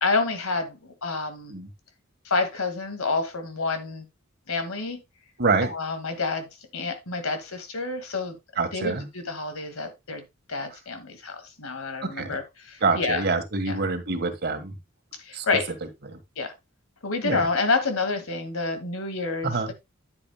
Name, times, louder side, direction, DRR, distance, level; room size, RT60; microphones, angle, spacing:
voice 1, 0.0-1.5 2.3-4.1 4.5-5.0 5.6-8.4 8.7-10.2 10.5-13.2 13.7-13.8 15.2-15.7 16.4-16.5 17.0-19.7, left 3 dB, 90° left, 2.0 m, -28 dB
voice 2, 5.4-5.7 8.6-9.1 12.2-12.4 12.8-14.8 15.3-15.5 16.0-16.2 17.2-17.5 19.4-19.7, right 3 dB, 50° right, 1.6 m, -26 dB
10.0 x 9.1 x 2.3 m
head